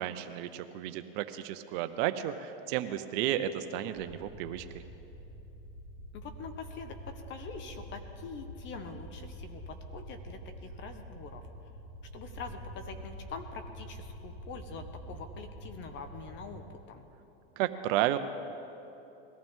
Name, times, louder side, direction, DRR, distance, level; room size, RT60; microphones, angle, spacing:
voice 1, 0.0-4.8 17.6-18.2, right 12 dB, 55° right, 10 dB, 0.7 m, -32 dB
sound 1, 3.9-16.7, right 1 dB, 15° left, 2.2 m, -46 dB
voice 2, 6.1-11.5 12.1-17.1, left 5 dB, 40° left, 7 dB, 1.2 m, -44 dB
21.0 x 14.5 x 3.7 m, 2.9 s
supercardioid pair, 120°, 30 cm